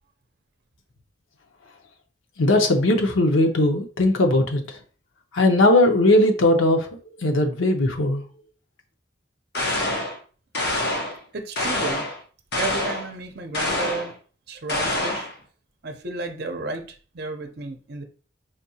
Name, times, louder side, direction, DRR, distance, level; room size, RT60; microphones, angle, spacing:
voice 1, 2.4-4.6 5.3-6.9 7.2-8.2, left 1 dB, 85° left, 0.7 m, -18 dB
sound 1, 9.5-10.2 10.5-11.2 11.6-12.2 12.5-13.1 13.5-14.1 14.7-15.3, left 1 dB, 55° left, 1.0 m, -26 dB
voice 2, 11.3-12.1 12.6-14.1 14.5-15.3 15.8-18.0, right 3 dB, 55° right, 0.7 m, -32 dB
5.0 x 2.7 x 2.8 m
head